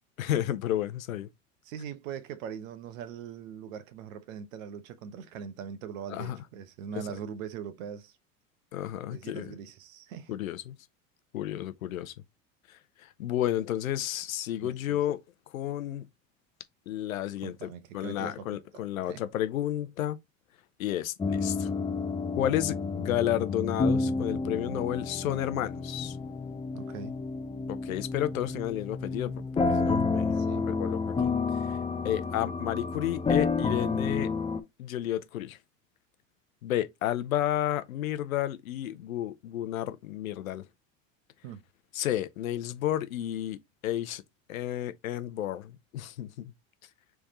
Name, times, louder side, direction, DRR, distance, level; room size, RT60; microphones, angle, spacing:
voice 1, 0.2-1.3 6.1-6.4 6.9-7.0 8.7-9.5 10.3-10.8 11.3-12.1 12.7-15.2 15.5-16.1 16.9-20.2 20.8-21.7 22.4-26.2 27.7-30.4 30.6-31.3 31.7-31.8 32.0-34.3 34.8-35.6 36.6-40.6 41.9-44.2 44.5-46.5, left 12 dB, 90° left, 0.7 m, -32 dB
voice 2, 1.6-8.2 9.1-10.3 14.6-15.0 17.4-19.2 26.7-27.1 30.3-30.7 41.4-41.6, right 8 dB, 75° right, 1.1 m, -41 dB
sound 1, 21.2-34.6, left 4 dB, 15° left, 0.6 m, -30 dB
3.6 x 3.4 x 4.1 m
hypercardioid pair, 95°, 40 cm